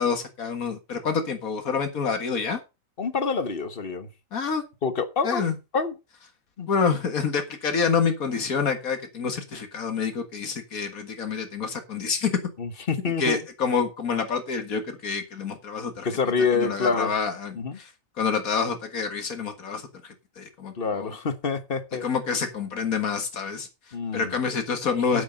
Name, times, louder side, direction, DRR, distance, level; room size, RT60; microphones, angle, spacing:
voice 1, 0.0-2.6 4.3-4.6 5.2-5.5 6.7-12.4 13.2-16.1 16.5-17.9 18.2-21.1 22.0-25.2, left 5 dB, 85° left, 2.1 m, -27 dB
voice 2, 3.0-4.1 4.8-5.4 5.7-5.9 6.6-6.7 12.6-13.4 16.0-17.1 17.6-17.8 20.8-22.0 23.9-24.3 25.1-25.2, left 5 dB, 45° left, 1.4 m, -27 dB
9.6 x 8.7 x 5.3 m
omnidirectional pair, 1.4 m